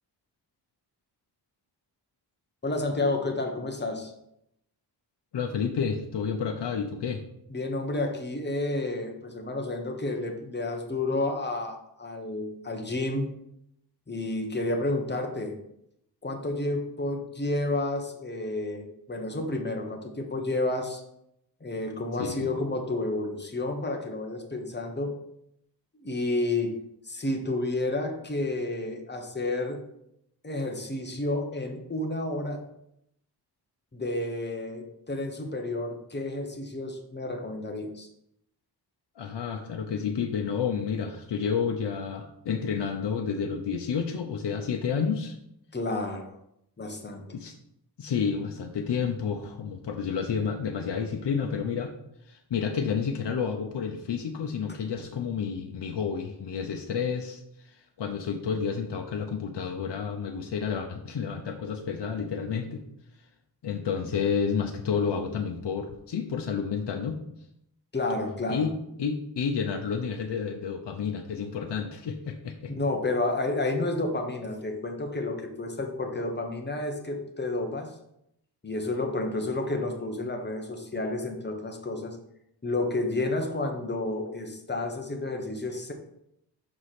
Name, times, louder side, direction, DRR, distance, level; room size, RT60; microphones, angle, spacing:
voice 1, 2.6-4.1 7.5-13.3 14.1-15.6 16.2-21.0 21.6-25.1 26.0-26.7 27.0-29.8 30.4-32.7 33.9-38.1 45.7-46.3 46.8-47.2 54.7-54.8 67.9-68.7 72.7-77.9 78.6-82.2 82.6-85.9, left 2 dB, 25° left, 3 dB, 1.0 m, -30 dB
voice 2, 5.3-7.2 22.2-22.5 39.2-45.4 47.3-47.6 48.0-51.9 52.3-62.8 63.6-67.2 68.5-68.7 69.0-72.7, left 6 dB, 80° left, 3 dB, 0.7 m, -30 dB
6.1 x 4.8 x 4.2 m, 0.78 s
wide cardioid pair, 110°, 42 cm